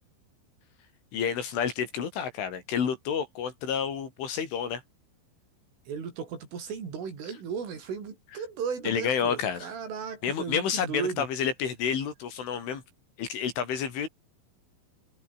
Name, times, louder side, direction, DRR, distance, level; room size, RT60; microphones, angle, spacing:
voice 1, 1.1-4.8 8.8-9.7 10.2-12.8 13.2-14.1, left 7 dB, 75° left, 6.6 m, -29 dB
voice 2, 5.9-11.3, right 6 dB, 75° right, 8.1 m, -35 dB
omnidirectional pair, 5.7 m